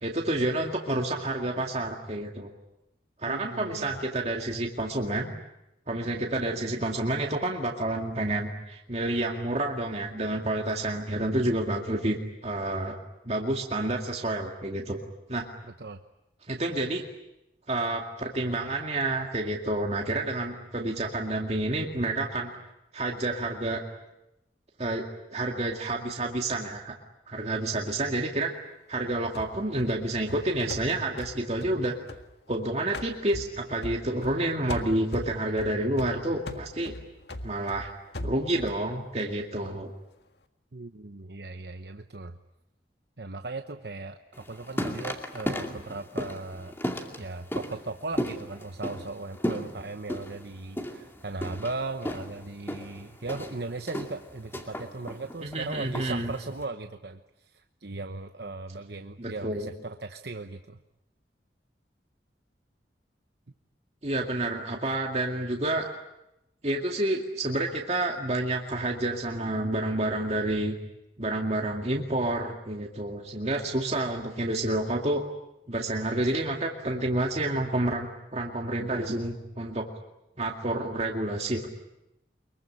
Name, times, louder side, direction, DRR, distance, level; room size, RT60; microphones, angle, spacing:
voice 1, 0.0-2.5 3.2-5.3 5.9-12.2 12.4-13.0 13.2-15.0 15.3-15.5 16.5-17.0 17.7-22.5 22.9-23.8 24.8-25.0 25.3-27.0 27.3-28.5 28.9-32.0 32.5-36.9 37.4-37.9 38.2-39.9 55.4-56.3 59.2-59.7 64.0-65.9 66.6-70.7 71.2-75.2 75.7-79.9 80.4-81.7, right 1 dB, 35° right, 1 dB, 2.2 m, -29 dB
voice 2, 3.3-4.0 15.6-16.0 40.7-42.4 43.2-46.7 47.2-60.8, right 3 dB, 65° right, 7 dB, 1.0 m, -38 dB
sound 1, 29.3-32.6 32.9-34.4 34.7-38.8, left 1 dB, 70° left, 1.8 m, -40 dB
sound 2, 44.3-56.6, equal, 15° left, 2.4 m, -36 dB
24.0 x 23.0 x 10.0 m, 0.89 s
head